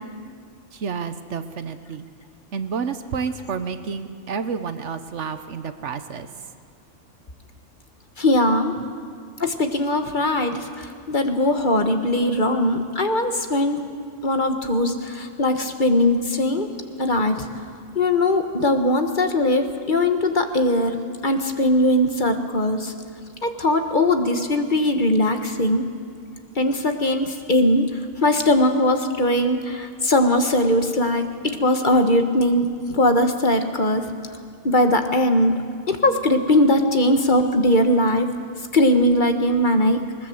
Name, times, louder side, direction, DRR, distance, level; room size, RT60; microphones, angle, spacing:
voice 1, 0.7-2.0 2.5-6.3, right 6 dB, 65° right, 10 dB, 1.2 m, -30 dB
voice 2, 8.2-8.7 9.4-13.8 14.2-16.7 17.0-17.5 17.9-21.0 21.2-22.9 23.4-25.8 26.6-27.9 28.2-31.2 31.6-34.0 34.6-35.5 35.9-38.3 38.7-40.0, left 1 dB, 40° left, 6 dB, 1.4 m, -20 dB
20.5 x 19.5 x 7.8 m, 2.1 s
omnidirectional pair, 1.3 m